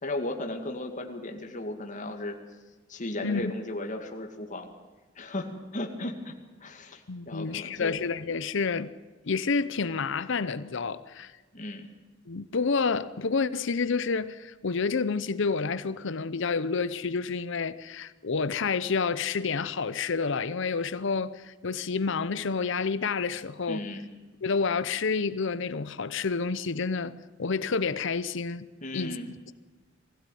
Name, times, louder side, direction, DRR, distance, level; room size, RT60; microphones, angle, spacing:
voice 1, 0.0-2.4 2.9-4.7 5.2-6.3 6.6-7.9 11.5-11.9 23.7-24.0 28.8-29.3, left 1 dB, 40° left, 2.3 m, -35 dB
voice 2, 7.1-8.9 9.3-11.3 12.3-23.9 24.4-28.7 28.9-29.2, left 4 dB, 70° left, 0.7 m, -29 dB
21.0 x 16.0 x 9.2 m
head